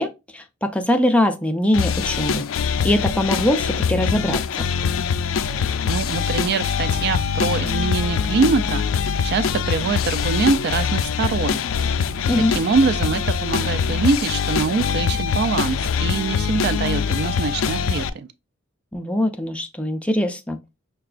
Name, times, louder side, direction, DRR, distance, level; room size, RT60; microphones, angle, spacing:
voice 1, 0.0-4.4 12.3-12.5 18.9-20.6, left 1 dB, 5° left, 0.5 m, -22 dB
sound 1, 1.7-18.1, left 6 dB, 90° left, 0.3 m, -23 dB
voice 2, 5.9-11.6 12.5-18.3, right 4 dB, 55° right, 0.3 m, -23 dB
5.7 x 2.3 x 2.4 m
head